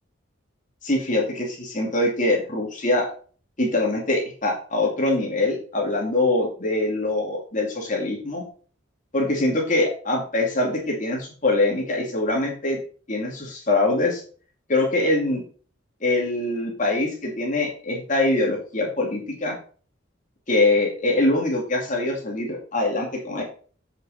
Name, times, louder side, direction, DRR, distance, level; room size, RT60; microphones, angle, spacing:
voice 1, 0.8-3.1 3.6-8.4 9.1-12.8 13.1-14.2 14.7-15.4 16.0-19.5 20.5-23.4, left 2 dB, 40° left, -1 dB, 2.4 m, -23 dB
7.8 x 6.4 x 4.3 m, 0.40 s
head